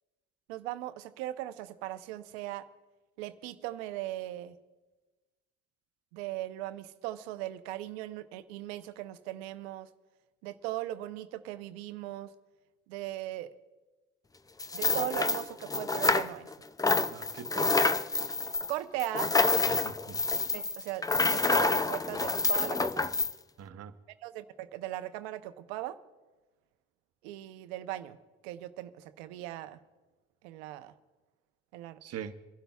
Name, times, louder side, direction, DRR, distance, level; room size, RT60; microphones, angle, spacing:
voice 1, 0.5-2.7 3.2-4.5 6.1-9.9 10.4-12.3 12.9-13.5 14.7-16.5 18.7-19.3 20.5-23.0 24.2-26.0 27.2-28.2 28.4-29.8 30.4-30.9 31.7-32.0, right 15 dB, 85° right, 0.8 m, -38 dB
sound 1, 14.6-16.5 16.8-23.3, left 3 dB, 10° left, 0.4 m, -28 dB
voice 2, 17.0-18.1 19.7-20.2 23.6-23.9 32.0-32.3, right 8 dB, 50° right, 1.0 m, -44 dB
28.5 x 11.5 x 2.3 m
hypercardioid pair, 65°, 31 cm